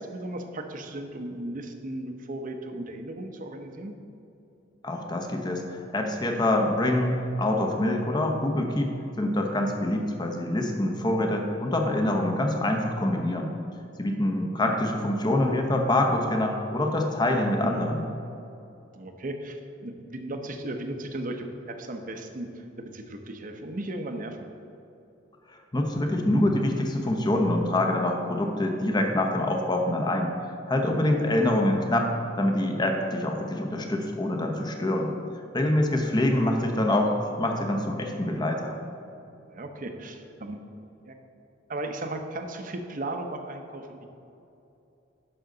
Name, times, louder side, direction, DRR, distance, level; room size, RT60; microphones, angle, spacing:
voice 1, 0.0-3.9 17.6-17.9 18.9-24.5 30.7-30.9 39.5-40.6 41.0-41.1 41.7-44.1, right 1 dB, 45° right, 5 dB, 0.7 m, -36 dB
voice 2, 4.8-13.5 14.0-18.0 25.7-30.3 30.7-35.1 35.5-38.8, left 1 dB, 20° left, 2 dB, 0.8 m, -25 dB
10.0 x 6.5 x 3.9 m, 2.8 s
head